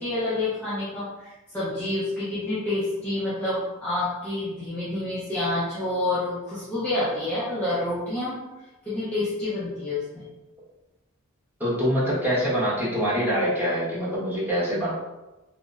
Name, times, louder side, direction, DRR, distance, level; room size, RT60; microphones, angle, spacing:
voice 1, 0.0-8.3 8.8-10.2, left 2 dB, 5° left, -12 dB, 0.5 m, -28 dB
voice 2, 11.6-14.9, equal, 10° right, -11 dB, 1.0 m, -24 dB
2.8 x 2.0 x 2.3 m, 1.1 s
head